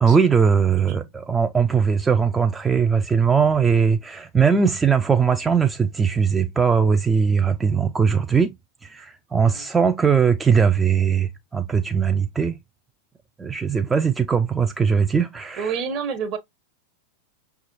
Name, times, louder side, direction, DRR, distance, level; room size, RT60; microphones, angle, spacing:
voice 1, 0.0-8.5 8.8-12.6 13.4-15.8, right 6 dB, 15° right, 0.3 m, -20 dB
voice 2, 15.6-16.4, right 6 dB, 40° right, 0.9 m, -28 dB
6.0 x 2.3 x 2.9 m
figure-of-eight pair, 90°, 0 cm